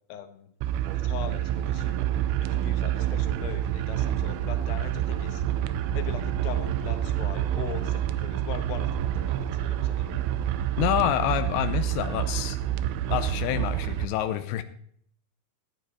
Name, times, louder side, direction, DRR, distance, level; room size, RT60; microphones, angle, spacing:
voice 1, 0.1-0.5 0.9-2.0 2.4-5.4 5.9-10.2, left 8 dB, 70° left, 8 dB, 2.7 m, -40 dB
sound 1, 0.6-14.1, right 12 dB, 85° right, 3.1 m, -28 dB
Brass instrument, 0.8-13.1, right 5 dB, 70° right, 2.5 m, -44 dB
voice 2, 10.8-12.6 13.1-14.6, left 12 dB, 90° left, 9 dB, 2.4 m, -27 dB
14.0 x 9.2 x 4.2 m, 0.65 s
omnidirectional pair, 5.9 m